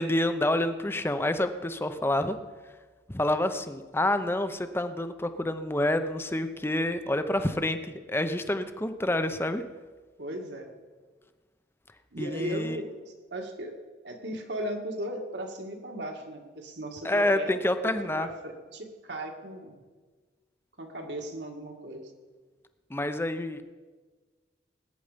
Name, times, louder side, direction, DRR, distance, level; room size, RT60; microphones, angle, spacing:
voice 1, 0.0-2.4 3.1-9.6 12.2-12.8 17.0-18.3 22.9-23.6, left 1 dB, 15° left, 9 dB, 0.7 m, -28 dB
voice 2, 10.2-10.7 12.1-13.8 14.0-17.5 18.2-19.8 20.8-22.1, equal, 70° right, 2 dB, 2.1 m, -37 dB
20.0 x 9.5 x 5.1 m, 1.4 s
head